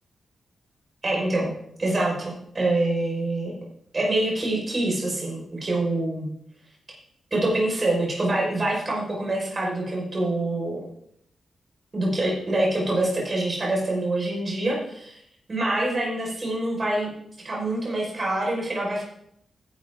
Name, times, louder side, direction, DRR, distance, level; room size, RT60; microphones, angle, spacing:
voice 1, 1.0-1.5 1.8-3.6 3.9-6.3 7.3-10.8 11.9-15.2 15.5-17.1 17.4-19.1, right 2 dB, 30° right, -3 dB, 5.5 m, -25 dB
16.0 x 11.0 x 3.9 m, 0.72 s
wide cardioid pair, 155°, 0 cm